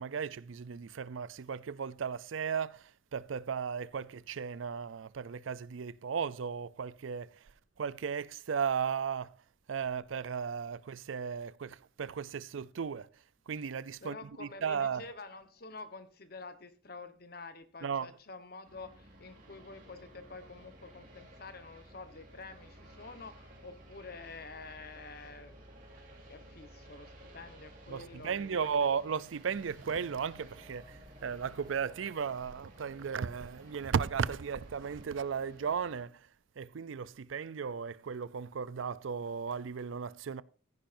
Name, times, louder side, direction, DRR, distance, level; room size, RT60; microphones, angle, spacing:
voice 1, 0.0-7.4 7.8-9.3 9.7-13.1 13.5-15.0 17.8-18.1 27.9-36.3 36.6-40.4, right 6 dB, 85° right, 0.5 m, -35 dB
voice 2, 14.0-25.6 26.3-28.9, left 3 dB, 50° left, 1.2 m, -48 dB
sound 1, 18.6-36.0, right 1 dB, 45° right, 3.1 m, -55 dB
14.5 x 10.5 x 2.6 m
head